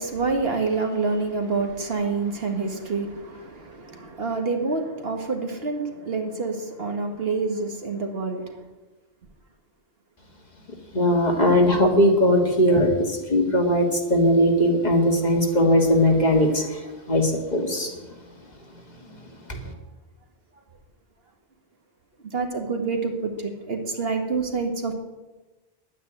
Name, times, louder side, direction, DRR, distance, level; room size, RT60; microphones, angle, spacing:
voice 1, 0.0-8.5 22.3-24.9, right 4 dB, 70° right, 1.9 m, -27 dB
voice 2, 10.9-16.8 17.1-17.9 19.5-19.6, equal, 40° left, 2.0 m, -19 dB
11.0 x 9.2 x 9.2 m
omnidirectional pair, 1.1 m